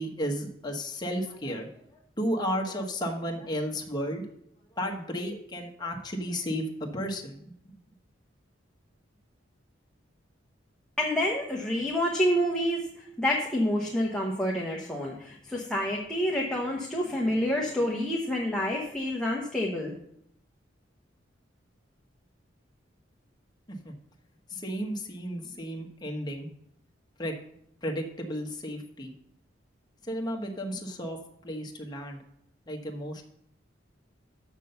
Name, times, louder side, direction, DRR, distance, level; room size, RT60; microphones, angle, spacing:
voice 1, 0.0-4.2 4.7-7.5 23.7-23.9 24.5-26.5 27.2-27.4 27.8-29.1 30.0-32.2 32.7-33.2, equal, 20° left, 1 dB, 1.2 m, -33 dB
voice 2, 11.0-19.9, equal, 5° left, -2 dB, 0.9 m, -28 dB
6.7 x 6.0 x 6.8 m, 0.72 s
head